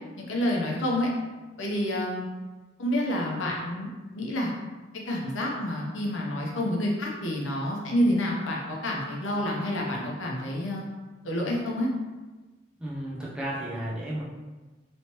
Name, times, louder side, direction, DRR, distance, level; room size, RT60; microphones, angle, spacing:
voice 1, 0.2-1.1 1.6-2.3 2.8-4.5 5.1-10.9 11.2-11.9, left 1 dB, 85° left, -2 dB, 0.7 m, -28 dB
voice 2, 12.8-14.2, right 1 dB, 5° right, -6 dB, 0.6 m, -33 dB
3.2 x 3.0 x 2.9 m, 1.2 s
head